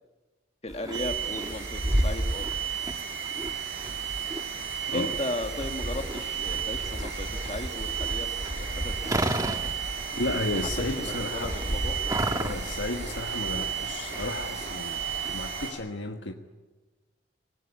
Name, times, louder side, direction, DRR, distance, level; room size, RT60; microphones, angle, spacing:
voice 1, 0.6-2.5 4.9-9.1 11.0-12.0, left 1 dB, 35° left, 7 dB, 1.6 m, -36 dB
sound 1, 0.7-15.7, right 1 dB, 20° right, 1.3 m, -33 dB
sound 2, 0.9-15.7, right 8 dB, 80° right, 6.2 m, -34 dB
voice 2, 4.9-5.2 10.2-11.8 12.4-15.0 15.3-16.3, left 2 dB, 90° left, 3 dB, 1.4 m, -33 dB
24.0 x 19.0 x 9.8 m, 1.2 s
head